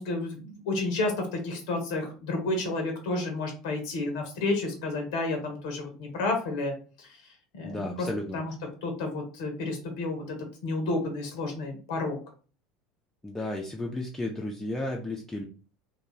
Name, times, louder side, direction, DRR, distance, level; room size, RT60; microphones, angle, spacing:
voice 1, 0.0-7.1 7.5-8.1 8.3-8.5 8.8-10.4 10.6-12.2, left 2 dB, 65° left, 3 dB, 0.6 m, -31 dB
voice 2, 7.6-8.4 13.2-15.5, left 1 dB, 10° left, 0 dB, 0.4 m, -33 dB
2.3 x 2.3 x 3.1 m, 0.38 s
figure-of-eight pair, 70°, 3 cm